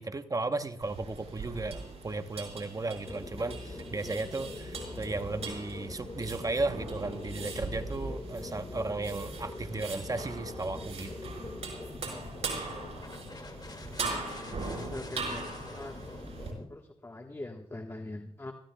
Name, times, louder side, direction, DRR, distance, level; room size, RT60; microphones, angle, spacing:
voice 1, 0.0-11.3, right 3 dB, 35° right, 9 dB, 0.9 m, -35 dB
sound 1, 0.8-16.5, right 3 dB, 75° right, 5.0 m, -41 dB
sound 2, 3.0-16.7, left 3 dB, 40° left, 2.2 m, -43 dB
voice 2, 14.0-15.4 15.7-16.0 16.7-18.5, left 2 dB, 25° left, 4 dB, 1.3 m, -42 dB
24.0 x 15.0 x 2.3 m, 0.76 s
cardioid pair, 60°, 11 cm